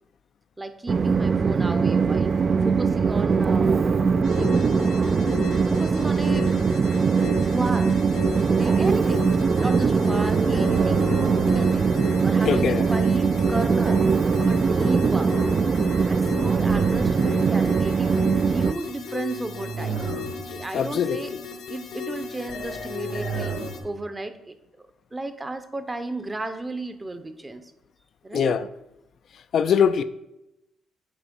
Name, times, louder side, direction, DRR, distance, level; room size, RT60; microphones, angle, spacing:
voice 1, 0.6-3.9 4.3-4.7 5.7-6.7 7.2-8.0 8.5-9.2 9.6-11.1 11.4-11.9 12.2-14.0 14.4-15.3 16.1-20.0 20.5-21.3 21.7-23.5 23.8-24.5 25.1-27.7 28.2-28.6, right 2 dB, 20° right, 0.7 m, -33 dB
Train, 0.9-18.7, right 5 dB, 40° right, 0.3 m, -21 dB
sound 1, 4.2-23.8, left 6 dB, 85° left, 1.1 m, -36 dB
sound 2, 8.4-13.8 15.8-17.7 19.2-20.8 22.6-23.9, right 5 dB, 75° right, 0.9 m, -32 dB
voice 2, 12.4-12.9 20.7-21.2 28.3-28.6 29.5-30.0, left 7 dB, 60° left, 0.3 m, -22 dB
8.0 x 2.9 x 5.3 m
cardioid pair, 90°, 0 cm